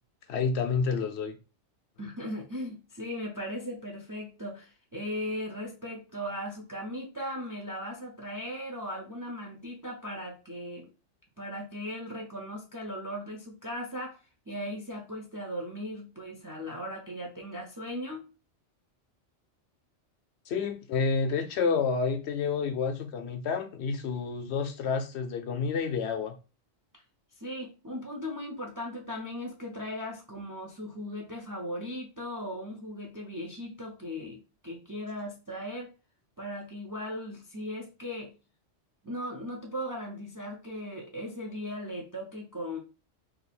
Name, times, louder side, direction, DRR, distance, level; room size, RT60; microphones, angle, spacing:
voice 1, 0.3-1.4 20.5-26.4, left 5 dB, 70° left, 0.8 m, -29 dB
voice 2, 2.0-10.8 11.4-14.2 14.5-18.3 27.4-35.9 36.4-38.3 39.0-42.8, equal, 30° right, 0.3 m, -38 dB
2.7 x 2.4 x 4.1 m
omnidirectional pair, 1.2 m